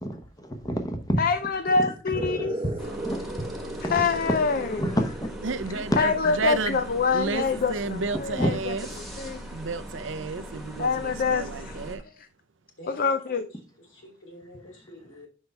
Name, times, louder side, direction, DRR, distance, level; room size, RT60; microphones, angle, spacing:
voice 1, 0.0-1.2 2.4-2.5 3.0-3.2 4.0-4.4 4.8-5.1 5.7-6.1 8.1-8.5, equal, 20° left, 0.9 m, -28 dB
voice 2, 1.2-2.6 3.8-5.0 6.0-9.4 10.8-11.8 12.9-13.4, left 5 dB, 50° left, 0.5 m, -26 dB
sound 1, 2.1-9.3, right 1 dB, 25° right, 1.1 m, -38 dB
sound 2, 2.8-12.0, equal, ahead, 1.4 m, -40 dB
voice 3, 5.4-6.1 6.4-6.8 7.1-7.4 7.7-8.9 9.5-12.0, right 4 dB, 85° right, 0.6 m, -31 dB
voice 4, 12.8-13.5 13.8-15.3, left 1 dB, 80° left, 3.0 m, -46 dB
6.2 x 5.5 x 3.4 m
head